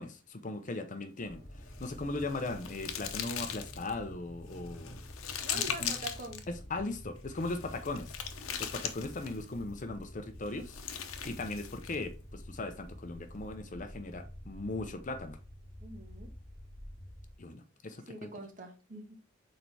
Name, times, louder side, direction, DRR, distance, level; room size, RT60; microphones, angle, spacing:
voice 1, 0.0-1.4 1.8-5.0 5.5-5.9 6.5-8.2 8.6-10.8 11.2-15.4 17.4-18.3, left 2 dB, 40° left, 0.7 m, -38 dB
sound 1, 1.2-17.4, equal, 60° left, 2.6 m, -49 dB
sound 2, 1.7-3.9 4.5-6.4 7.3-9.5 10.5-12.0, left 9 dB, 85° left, 0.8 m, -39 dB
voice 2, 5.4-6.4 15.8-16.3 18.1-19.1, right 2 dB, 40° right, 1.4 m, -44 dB
6.5 x 4.5 x 3.4 m
head